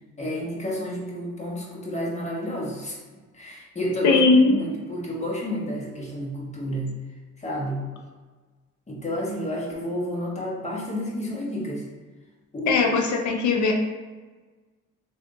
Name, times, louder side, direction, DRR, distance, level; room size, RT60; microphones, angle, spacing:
voice 1, 0.2-3.0 3.3-4.2 4.5-7.0 7.4-7.8 8.9-11.9 12.5-12.8, equal, 20° left, -4 dB, 1.2 m, -30 dB
voice 2, 4.0-4.6 12.7-13.7, left 3 dB, 70° left, 2 dB, 0.7 m, -19 dB
3.5 x 2.6 x 3.6 m, 1.3 s
cardioid pair, 90°, 30 cm